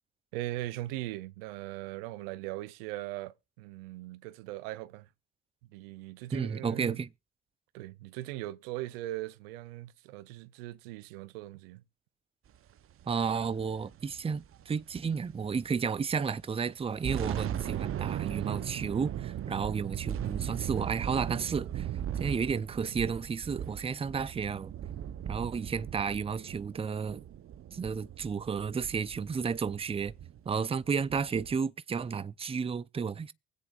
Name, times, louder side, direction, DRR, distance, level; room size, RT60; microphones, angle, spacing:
voice 1, 0.3-5.1 5.7-7.0 7.7-11.8, right 16 dB, 80° right, 0.6 m, -39 dB
voice 2, 6.3-7.1 13.1-21.9 22.2-24.7 25.3-27.2 27.7-30.1 30.5-33.3, right 6 dB, 20° right, 0.6 m, -32 dB
sound 1, 13.0-15.8 16.1-16.3 16.8-31.6, right 10 dB, 45° right, 0.8 m, -38 dB
24.0 x 8.2 x 2.5 m
hypercardioid pair, 55°, 29 cm